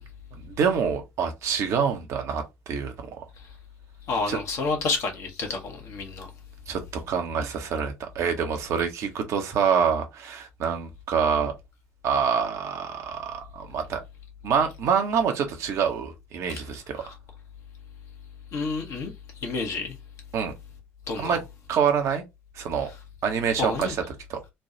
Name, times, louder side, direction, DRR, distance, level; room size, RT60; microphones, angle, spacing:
voice 1, 0.4-3.2 4.3-4.4 6.7-11.5 12.0-14.0 14.4-17.1 20.3-20.5 21.2-21.4 21.7-22.2 22.6-22.9 23.2-24.0 24.3-24.4, right 7 dB, 50° right, 0.8 m, -26 dB
voice 2, 4.1-6.3 17.0-17.1 18.5-19.1 19.4-20.0 21.1-21.4 23.6-23.9, left 4 dB, 50° left, 0.9 m, -29 dB
3.2 x 2.3 x 2.7 m
figure-of-eight pair, 50°, 6 cm